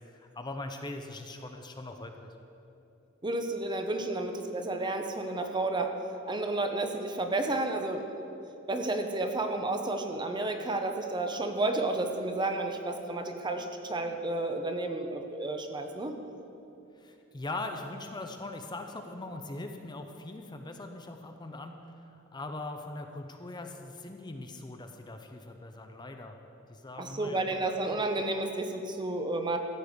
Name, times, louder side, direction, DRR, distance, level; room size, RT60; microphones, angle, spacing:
voice 1, 0.1-2.3 17.0-26.4 26.7-27.7, left 2 dB, 20° left, 5 dB, 0.7 m, -41 dB
voice 2, 3.2-6.0 6.3-8.3 8.7-16.1 27.0-29.6, right 2 dB, 20° right, 5 dB, 0.8 m, -31 dB
14.5 x 8.2 x 5.2 m, 2.8 s
head